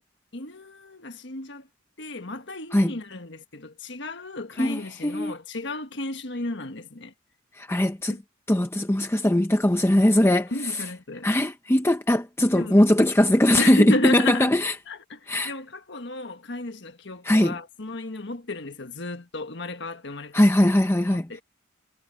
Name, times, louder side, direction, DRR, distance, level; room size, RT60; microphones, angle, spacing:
voice 1, 0.3-1.7 2.0-7.1 8.1-8.2 10.5-11.3 12.5-12.8 13.6-14.5 14.9-15.2 15.4-20.7 21.3-21.4, left 2 dB, 60° left, 1.6 m, -33 dB
voice 2, 4.6-5.3 7.6-8.2 8.5-10.8 11.2-14.7 15.3-15.5 17.2-17.6 20.3-21.4, left 1 dB, 15° left, 0.7 m, -20 dB
head